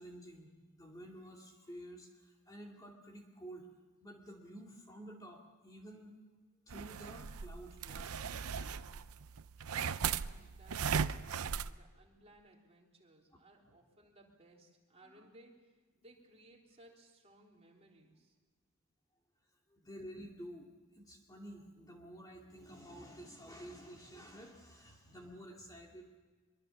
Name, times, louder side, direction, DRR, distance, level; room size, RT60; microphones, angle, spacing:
voice 1, 0.0-3.7 4.0-6.2 6.7-8.9 19.7-20.7 20.9-26.2, equal, 15° left, 0 dB, 2.4 m, -51 dB
sound 1, 6.7-11.7, right 6 dB, 90° right, 0.6 m, -38 dB
voice 2, 10.1-18.4, right 1 dB, 30° right, -1 dB, 3.6 m, -62 dB
24.0 x 23.5 x 7.1 m, 1.3 s
head